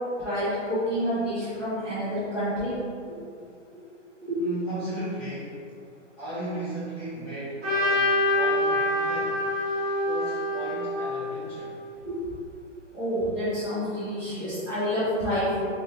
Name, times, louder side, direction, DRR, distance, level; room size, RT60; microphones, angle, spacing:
voice 1, 0.2-2.7 4.3-4.4 12.1-12.2 12.9-15.7, equal, 5° left, -15 dB, 0.4 m, -28 dB
voice 2, 4.4-5.6 6.2-9.5 10.0-11.8, right 1 dB, 25° left, -14 dB, 1.4 m, -36 dB
Trumpet, 7.6-11.8, left 1 dB, 20° right, 1.4 m, -26 dB
3.4 x 3.3 x 2.8 m, 2.4 s
hypercardioid pair, 150°, 38 cm